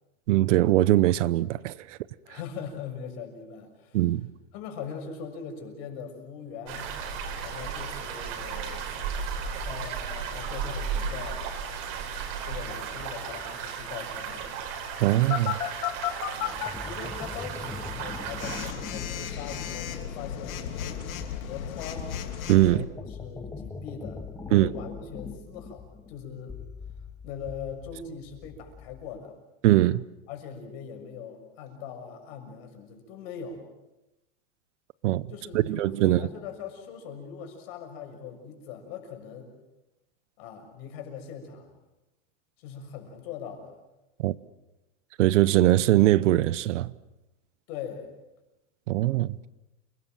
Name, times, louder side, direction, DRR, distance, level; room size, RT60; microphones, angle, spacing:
voice 1, 0.3-2.0 3.9-4.3 15.0-15.6 22.5-22.8 24.5-24.7 29.6-30.0 35.0-35.2 35.7-36.2 44.2-44.4 45.2-46.9 48.9-49.4, right 15 dB, 60° right, 0.8 m, -21 dB
voice 2, 2.2-4.0 4.5-6.9 7.4-8.9 9.6-11.5 12.4-14.5 16.3-21.0 21.5-22.1 22.7-26.6 27.2-29.3 30.3-33.6 35.3-39.5 40.4-41.7 42.6-43.8 47.7-48.1, left 6 dB, 45° left, 6.4 m, -41 dB
sound 1, 6.7-18.7, right 6 dB, 45° right, 4.8 m, -35 dB
Telephone, 15.3-16.7 18.4-22.7, left 10 dB, 85° left, 3.2 m, -33 dB
sound 2, 16.5-29.2, left 4 dB, 5° left, 0.8 m, -42 dB
29.5 x 20.0 x 7.6 m
supercardioid pair, 155°, 41 cm